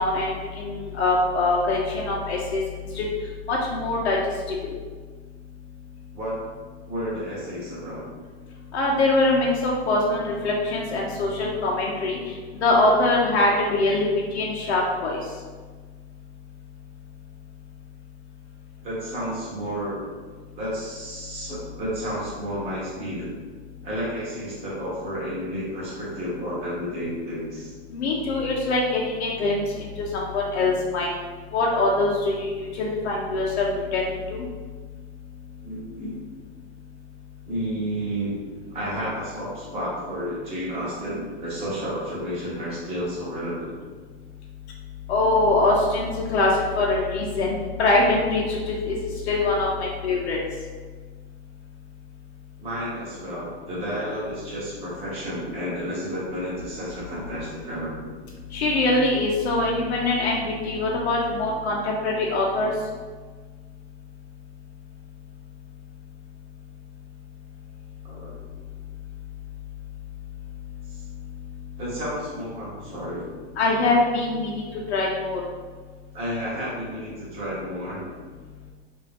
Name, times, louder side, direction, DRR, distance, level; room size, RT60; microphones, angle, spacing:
voice 1, 0.0-3.1 3.5-4.2 4.5-4.7 8.7-12.2 12.6-14.1 14.3-15.2 27.9-31.1 31.5-34.4 45.1-46.5 46.8-49.0 49.3-50.4 58.5-62.7 73.6-75.4, left 2 dB, 80° left, -3 dB, 0.8 m, -23 dB
voice 2, 6.9-8.0 18.8-20.0 20.6-23.3 23.8-27.7 33.7-33.9 35.6-36.2 37.5-38.4 38.7-43.7 52.6-57.9 68.0-68.3 70.9-71.0 71.8-73.2 76.1-78.0, equal, 20° right, -7 dB, 0.9 m, -31 dB
3.7 x 2.6 x 3.4 m, 1.4 s
supercardioid pair, 165°, 32 cm